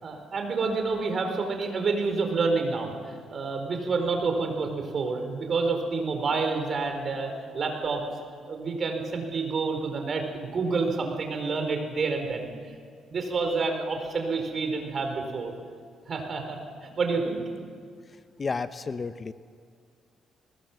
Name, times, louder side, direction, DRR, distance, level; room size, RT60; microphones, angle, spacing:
voice 1, 0.0-8.0 8.5-12.5 13.1-15.5 16.1-17.4, right 4 dB, 50° right, 4 dB, 4.7 m, -28 dB
voice 2, 18.4-19.3, left 4 dB, 35° left, 12 dB, 0.8 m, -31 dB
21.0 x 20.5 x 7.5 m, 2.1 s
cardioid pair, 90°, 0 cm